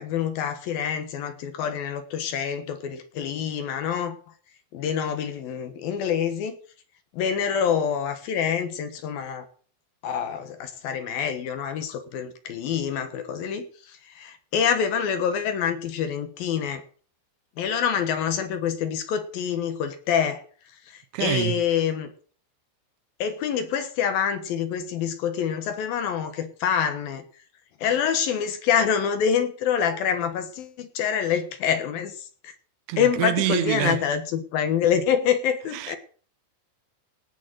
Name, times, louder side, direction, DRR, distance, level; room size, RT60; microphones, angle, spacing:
voice 1, 0.0-4.2 4.7-6.6 7.1-9.4 10.0-16.8 17.6-20.4 20.9-22.1 23.2-27.2 27.8-32.5 33.0-36.0, left 8 dB, 65° left, 2.7 m, -26 dB
voice 2, 21.1-21.6 32.9-34.0 35.7-36.0, right 16 dB, 85° right, 3.1 m, -26 dB
17.5 x 6.9 x 6.5 m
omnidirectional pair, 5.0 m